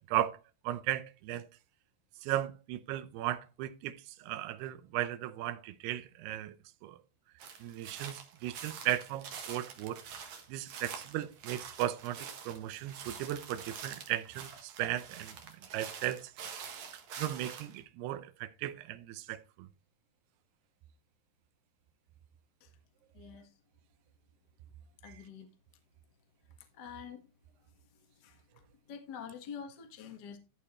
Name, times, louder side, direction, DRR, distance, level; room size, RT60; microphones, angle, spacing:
voice 1, 0.1-0.4 0.6-1.5 2.2-6.5 6.8-7.0 7.6-10.0 10.5-16.3 16.6-16.9 17.2-19.7 25.0-25.3, right 13 dB, 80° right, 2.8 m, -36 dB
sound 1, 7.4-17.8, right 7 dB, 55° right, 2.4 m, -46 dB
voice 2, 23.1-23.5 25.0-25.5 26.8-27.2 28.2-28.4 28.9-30.4, left 7 dB, 65° left, 1.0 m, -46 dB
13.5 x 5.0 x 4.3 m
omnidirectional pair, 4.7 m